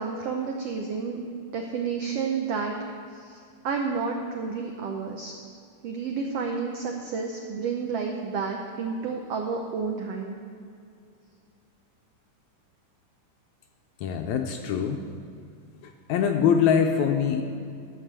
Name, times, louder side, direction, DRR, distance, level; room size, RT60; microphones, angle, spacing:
voice 1, 0.0-2.8 3.1-3.4 3.6-5.3 5.8-10.3, right 5 dB, 85° right, 2 dB, 1.3 m, -30 dB
voice 2, 14.0-15.0 15.8-17.4, left 7 dB, 80° left, 4 dB, 1.8 m, -23 dB
12.5 x 5.4 x 7.4 m, 2.4 s
omnidirectional pair, 3.8 m